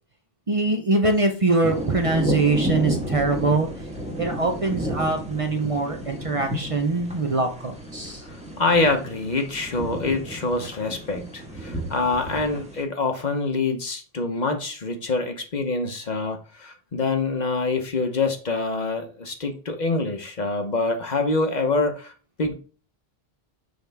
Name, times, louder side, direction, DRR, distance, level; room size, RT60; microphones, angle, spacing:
voice 1, 0.5-3.7 4.2-8.2, right 3 dB, 35° right, 4 dB, 0.7 m, -23 dB
sound 1, 1.6-12.8, equal, 5° right, 1.2 m, -32 dB
voice 2, 8.3-22.1 22.4-22.6, left 3 dB, 45° left, 5 dB, 1.0 m, -25 dB
6.5 x 4.7 x 3.4 m, 0.38 s
omnidirectional pair, 1.1 m